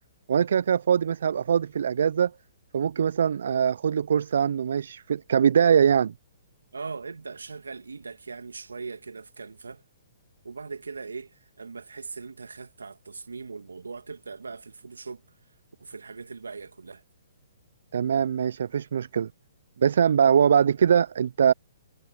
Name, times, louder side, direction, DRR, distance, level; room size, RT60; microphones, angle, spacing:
voice 1, 0.3-2.3 2.7-6.1 17.9-19.3 19.8-21.5, right 7 dB, 70° right, 0.3 m, -22 dB
voice 2, 6.7-9.8 10.4-15.2 15.8-17.0, right 4 dB, 90° right, 2.2 m, -40 dB
hypercardioid pair, 130°, 0 cm